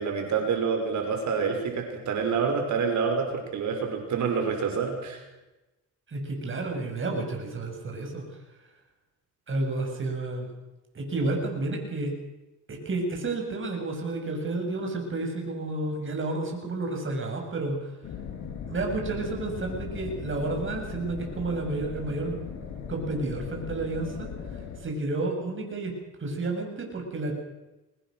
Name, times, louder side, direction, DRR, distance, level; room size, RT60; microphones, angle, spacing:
voice 1, 0.0-5.2, right 5 dB, 70° right, 4 dB, 5.7 m, -27 dB
voice 2, 6.1-8.2 9.5-10.5 10.9-12.1 12.7-17.9 18.7-25.9 26.2-27.3, right 2 dB, 40° right, 2 dB, 7.3 m, -31 dB
sound 1, 18.0-24.8, left 7 dB, 75° left, 6.4 m, -38 dB
23.0 x 19.0 x 6.5 m, 1.0 s
cardioid pair, 90°, 30 cm